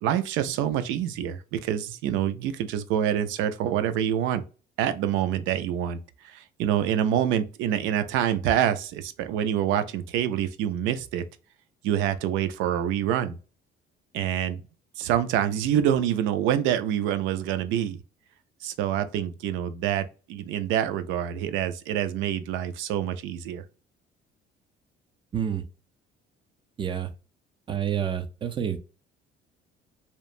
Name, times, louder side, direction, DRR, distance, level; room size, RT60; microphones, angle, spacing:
voice 1, 0.0-4.4 4.8-6.0 6.2-11.2 11.8-13.4 14.1-14.6 15.0-18.0 18.6-23.6, right 10 dB, 90° right, 0.4 m, -26 dB
voice 2, 25.3-25.6 26.8-27.1 27.7-28.8, right 9 dB, 25° right, 0.4 m, -28 dB
2.9 x 2.1 x 2.4 m
cardioid pair, 135°, 19 cm